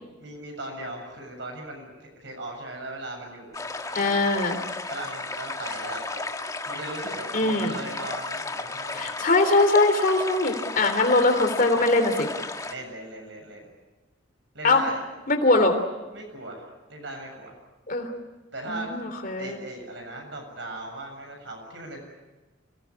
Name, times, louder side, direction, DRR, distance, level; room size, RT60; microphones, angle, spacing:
voice 1, 0.2-4.3 4.9-9.1 12.7-13.7 14.5-15.0 16.1-17.6 18.5-18.9 19.4-22.0, right 2 dB, 70° right, 2 dB, 7.4 m, -38 dB
sound 1, 3.5-12.7, left 3 dB, 20° left, 1.4 m, -34 dB
voice 2, 3.9-4.6 7.3-7.7 8.9-12.3 14.6-14.8 15.3-15.8 17.9-18.1 18.7-19.6, left 2 dB, 45° left, 6 dB, 3.3 m, -22 dB
26.0 x 18.5 x 9.8 m, 1.1 s
head